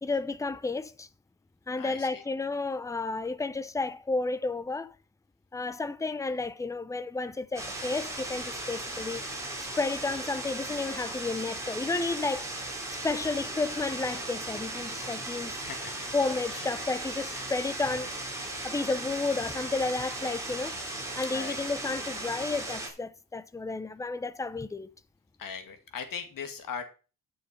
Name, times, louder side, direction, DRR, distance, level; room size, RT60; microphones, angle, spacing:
voice 1, 0.0-1.1 1.7-4.9 5.5-9.3 9.6-12.6 12.9-15.6 16.1-18.2 18.6-20.8 21.2-24.9, left 3 dB, 10° left, 0.6 m, -32 dB
voice 2, 1.8-2.2 15.6-16.1 16.5-16.7 17.3-17.5 21.3-21.7 25.4-26.8, left 6 dB, 70° left, 2.2 m, -40 dB
sound 1, 7.6-22.9, right 2 dB, 10° right, 3.5 m, -37 dB
11.5 x 6.5 x 5.3 m
cardioid pair, 140°, 35 cm